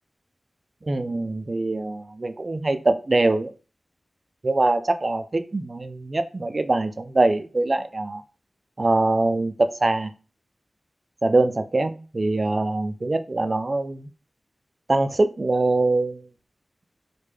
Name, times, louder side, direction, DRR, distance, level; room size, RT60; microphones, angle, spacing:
voice 1, 0.8-3.5 4.4-8.2 8.8-10.1 11.2-14.1 14.9-16.3, right 2 dB, 45° right, 9 dB, 0.3 m, -23 dB
3.2 x 2.1 x 3.4 m, 0.36 s
wide cardioid pair, 65°, 0 cm